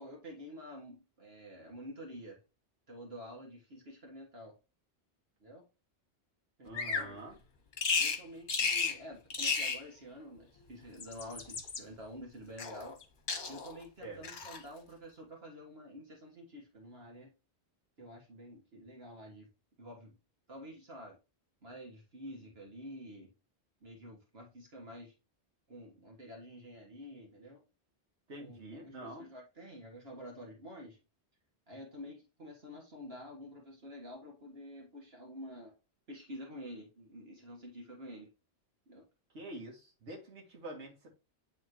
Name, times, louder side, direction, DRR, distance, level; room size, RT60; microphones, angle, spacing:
voice 1, 0.0-2.4 2.9-4.6 5.4-5.7 6.6-7.3 8.0-13.0 13.5-17.3 18.0-19.5 19.8-20.2 20.5-21.2 21.6-23.3 23.8-25.1 25.7-27.6 28.4-31.0 31.7-35.7 36.1-38.3 38.9-39.0, equal, 60° right, 1.8 m, -49 dB
voice 2, 6.6-7.4 14.0-14.3 28.3-29.3 39.3-41.1, right 1 dB, 90° right, 1.9 m, -46 dB
Bird vocalization bird call bird song, 6.7-7.1 7.8-8.2 8.5-9.0 9.3-9.8 10.8-11.8 12.6-13.0 13.3-13.8 14.2-14.6, left 5 dB, 50° left, 1.1 m, -33 dB
9.1 x 3.6 x 3.0 m
omnidirectional pair, 1.1 m